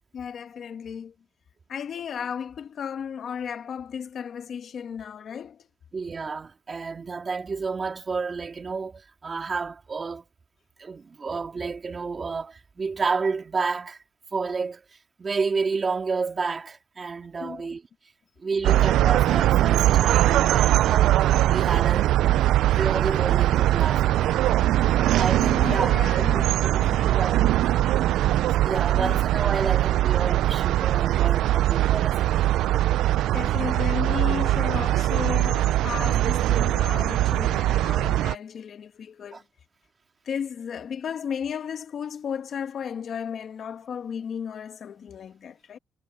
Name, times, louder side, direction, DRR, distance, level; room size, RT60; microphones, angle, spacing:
voice 1, 0.1-1.1 1.7-5.7 17.4-17.7 25.4-27.1 28.9-29.2 33.3-39.4 40.2-45.8, left 7 dB, 60° left, 1.6 m, -34 dB
voice 2, 5.9-10.3 10.8-14.0 14.3-17.8 18.4-21.1 21.5-24.6 25.2-27.5 28.3-32.5 39.3-39.4, right 4 dB, 35° right, 3.5 m, -31 dB
sound 1, 18.6-38.4, right 14 dB, 85° right, 0.4 m, -21 dB
cardioid pair, 90°, 0 cm